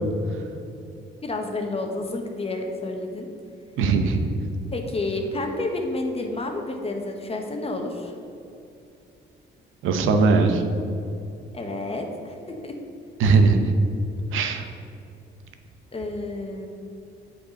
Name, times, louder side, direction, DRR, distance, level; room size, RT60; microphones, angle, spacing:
voice 1, 1.2-3.3 4.7-8.1 11.5-12.7 15.9-16.7, left 2 dB, 30° left, 3 dB, 1.1 m, -30 dB
voice 2, 3.8-4.2 9.8-10.6 13.2-13.7 14.3-14.7, right 4 dB, 90° right, 6 dB, 0.8 m, -19 dB
8.0 x 4.7 x 5.2 m, 2.7 s
cardioid pair, 90°, 20 cm